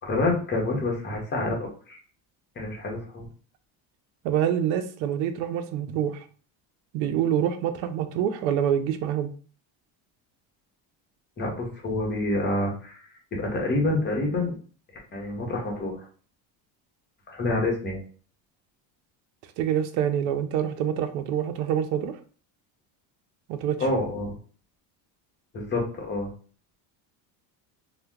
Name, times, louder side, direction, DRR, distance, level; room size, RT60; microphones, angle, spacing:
voice 1, 0.0-2.0 2.6-3.3 11.4-13.0 13.3-14.5 15.1-16.1 17.3-18.0 23.8-24.4 25.5-26.3, left 2 dB, 25° left, -1 dB, 0.9 m, -27 dB
voice 2, 4.2-6.2 6.9-9.3 19.6-22.2 23.5-23.8, right 9 dB, 90° right, 9 dB, 0.6 m, -26 dB
2.7 x 2.2 x 3.5 m, 0.41 s
cardioid pair, 160°, 46 cm